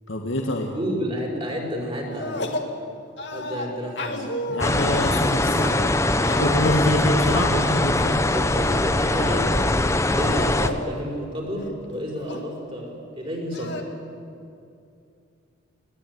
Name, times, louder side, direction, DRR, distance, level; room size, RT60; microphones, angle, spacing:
voice 1, 0.1-0.7 4.5-5.8 6.4-8.2, left 1 dB, 75° left, 1 dB, 2.1 m, -25 dB
voice 2, 0.7-2.6 3.3-4.3 8.3-9.5 10.2-13.9, equal, 25° right, -1 dB, 5.1 m, -30 dB
sound 1, 2.0-2.7 3.2-8.4 8.7-9.6 10.2-10.9 11.2-11.3 11.6-12.5 13.5-13.8, left 1 dB, 60° left, 2.0 m, -34 dB
sound 2, 4.6-10.7, left 2 dB, 15° left, 0.7 m, -22 dB
20.5 x 19.0 x 9.8 m, 2.5 s
head